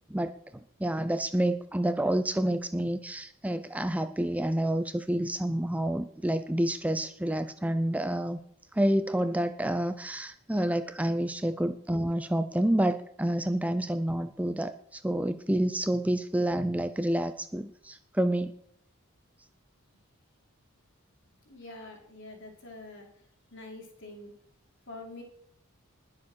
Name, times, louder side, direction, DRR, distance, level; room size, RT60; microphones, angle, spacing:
voice 1, 0.1-8.4 8.7-18.5, right 1 dB, 5° right, 10 dB, 0.5 m, -29 dB
voice 2, 21.5-23.1 23.5-24.3 24.9-25.2, left 2 dB, 55° left, 1 dB, 4.5 m, -45 dB
20.0 x 7.4 x 6.3 m, 0.69 s
head